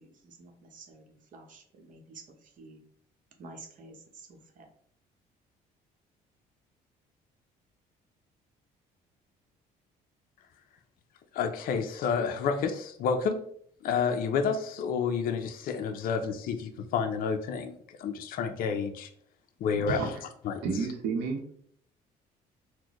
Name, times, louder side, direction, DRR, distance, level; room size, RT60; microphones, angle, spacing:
voice 1, 0.0-2.8 3.4-4.7, right 3 dB, 50° right, 4 dB, 0.8 m, -50 dB
voice 2, 11.3-13.4 13.8-19.1 19.6-20.2 20.4-20.6, left 6 dB, 60° left, 7 dB, 0.4 m, -30 dB
voice 3, 19.8-20.1 20.6-21.5, right 5 dB, 85° right, 3 dB, 0.8 m, -31 dB
4.0 x 2.1 x 2.9 m, 0.64 s
cardioid pair, 110°, 17 cm